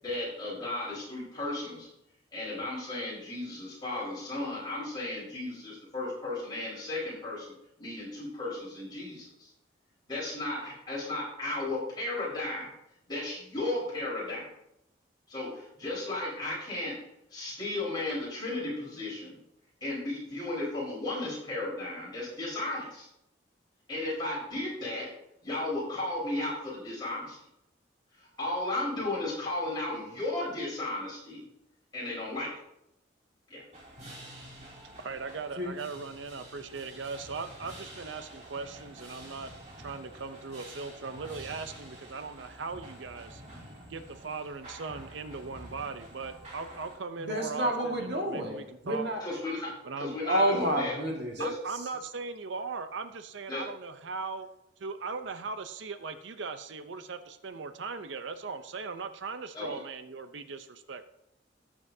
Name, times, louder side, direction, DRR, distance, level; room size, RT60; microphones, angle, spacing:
voice 1, 0.0-1.9 2.3-9.5 10.1-12.8 13.1-14.5 15.3-16.9 17.3-19.4 19.8-23.1 23.9-25.1 25.4-27.4 28.2-31.4 31.9-32.5 33.5-33.6 49.2-49.7 50.0-50.9 51.4-51.5 53.5-53.6 59.5-59.8, left 2 dB, 25° left, -7 dB, 4.5 m, -34 dB
sound 1, 33.7-47.0, right 1 dB, 35° right, 2.9 m, -48 dB
voice 2, 35.0-39.5 39.8-43.4 43.9-49.1 49.8-50.2 51.4-54.5 54.8-61.0, right 4 dB, 85° right, 10 dB, 0.6 m, -39 dB
voice 3, 47.2-49.2 50.2-51.3, equal, 65° right, 0 dB, 2.0 m, -29 dB
17.5 x 7.4 x 2.7 m, 0.82 s
head